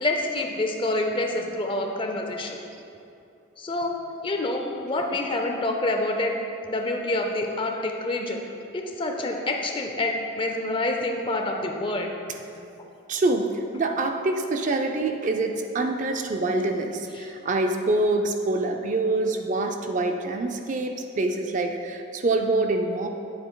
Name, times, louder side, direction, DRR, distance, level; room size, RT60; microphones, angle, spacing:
voice 1, 0.0-2.6 3.6-3.9 4.2-6.3 6.7-8.4 8.7-12.1 12.6-12.9 17.1-17.3, left 2 dB, 25° left, 3 dB, 0.4 m, -27 dB
voice 2, 13.1-23.1, right 2 dB, 35° right, 4 dB, 0.4 m, -25 dB
8.9 x 7.8 x 2.2 m, 2.7 s
head